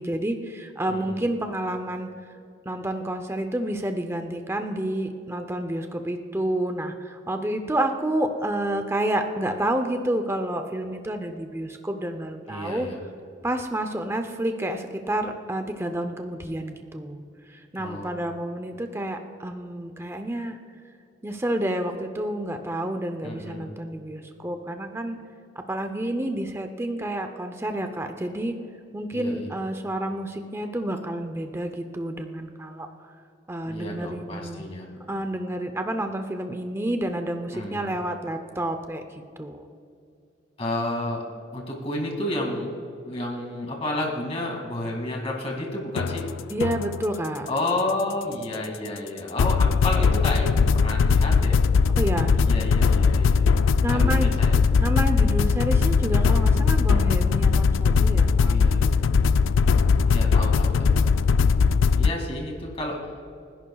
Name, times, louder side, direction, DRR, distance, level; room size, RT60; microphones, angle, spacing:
voice 1, 0.0-2.1 2.7-12.9 13.4-17.2 17.5-20.6 21.2-25.2 25.6-28.6 28.9-33.1 33.5-34.6 35.1-39.0 39.4-39.6 46.5-47.5 52.0-52.4 53.8-54.3 54.8-59.2, right 1 dB, 15° right, 6 dB, 0.6 m, -29 dB
voice 2, 0.9-1.3 12.5-13.0 17.8-18.1 23.2-23.8 29.1-29.5 33.6-34.9 37.5-37.9 40.6-41.2 41.5-42.7 43.0-46.3 47.5-51.6 52.3-53.6 53.9-54.6 58.4-59.0 60.1-61.2 61.9-63.0, left 1 dB, 30° left, 0 dB, 2.2 m, -31 dB
sound 1, 46.0-47.2 49.4-62.1, left 5 dB, 80° left, 0.3 m, -20 dB
29.5 x 11.0 x 2.3 m, 2.5 s
head